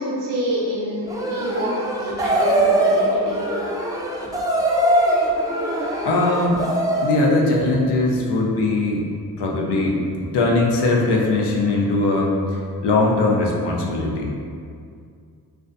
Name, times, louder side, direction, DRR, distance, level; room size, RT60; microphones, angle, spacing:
voice 1, 0.0-3.5, equal, 90° right, -5 dB, 0.6 m, -27 dB
sound 1, 1.1-7.2, right 1 dB, 10° right, 0.4 m, -21 dB
voice 2, 6.0-6.7 7.0-9.1 9.4-14.4, left 2 dB, 85° left, -1 dB, 0.5 m, -20 dB
2.4 x 2.1 x 2.4 m, 2.3 s
cardioid pair, 50°, 40 cm